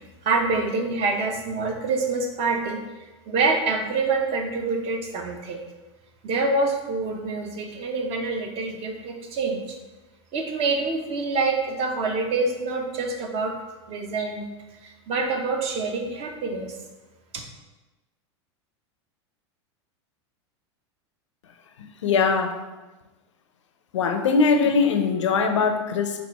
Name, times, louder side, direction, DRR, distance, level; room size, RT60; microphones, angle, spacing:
voice 1, 0.2-2.8 3.3-5.6 6.2-9.8 10.3-13.5 13.9-14.4 14.8-16.7, right 3 dB, 40° right, 3 dB, 0.8 m, -26 dB
voice 2, 22.0-22.6 23.9-26.2, left 5 dB, 90° left, 6 dB, 0.5 m, -21 dB
4.2 x 2.5 x 4.6 m, 1.1 s
hypercardioid pair, 110°, 15 cm